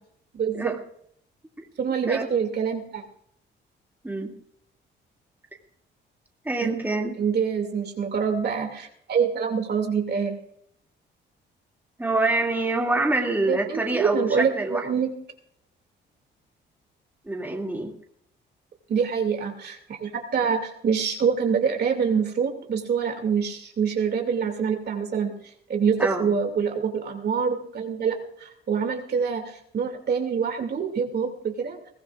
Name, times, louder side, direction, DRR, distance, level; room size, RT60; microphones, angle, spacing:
voice 1, 0.3-0.8 1.8-3.0 6.6-6.7 7.2-10.4 13.5-15.1 18.9-25.3 25.7-31.8, right 6 dB, 55° right, 3 dB, 2.6 m, -25 dB
voice 2, 6.4-7.1 12.0-14.8 17.3-17.9 26.0-26.3, right 2 dB, 10° right, 1 dB, 2.5 m, -25 dB
22.0 x 16.5 x 2.5 m, 0.70 s
cardioid pair, 90°, 20 cm